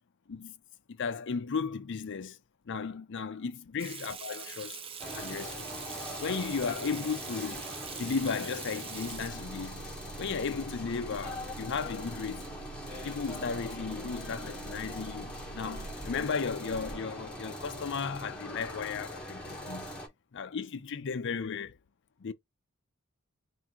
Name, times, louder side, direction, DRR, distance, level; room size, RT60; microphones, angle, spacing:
voice 1, 0.9-2.4 2.7-4.8 5.2-5.8 6.2-7.6 8.0-9.8 10.2-12.4 13.0-19.9 20.3-21.8 22.2-22.3, left 5 dB, 55° left, 0.5 m, -35 dB
Water tap faucet / Sink (filling or washing), 3.8-9.7, right 7 dB, 25° right, 0.5 m, -43 dB
sound 1, 5.0-20.1, equal, 5° left, 1.2 m, -42 dB
Motor vehicle (road) / Engine, 9.0-16.0, right 4 dB, 90° right, 0.5 m, -47 dB
3.7 x 2.7 x 4.2 m
head